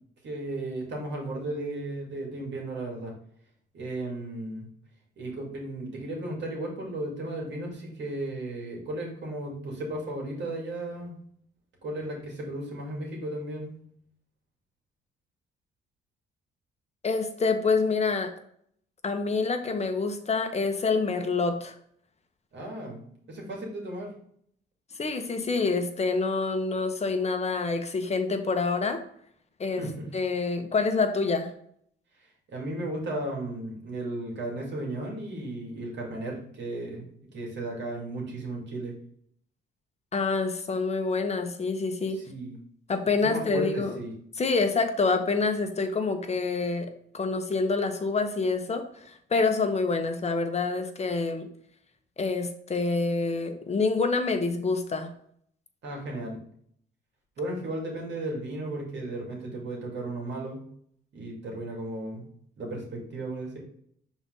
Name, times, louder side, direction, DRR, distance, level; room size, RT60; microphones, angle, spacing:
voice 1, 0.2-3.1 3.7-4.7 5.2-11.1 11.8-13.7 22.5-23.0 23.3-24.1 29.8-30.1 32.2-39.0 42.1-42.6 43.2-44.1 55.8-56.4 57.4-60.6 61.1-62.2 62.6-63.6, right 1 dB, 65° right, -1 dB, 2.5 m, -35 dB
voice 2, 17.0-18.3 19.0-21.7 25.0-29.0 29.6-29.8 30.1-31.5 40.1-42.2 42.9-43.9 44.4-46.9 47.1-51.4 52.2-55.1, left 4 dB, 35° left, 6 dB, 1.1 m, -27 dB
6.0 x 4.1 x 3.8 m, 0.65 s
cardioid pair, 90°, 20 cm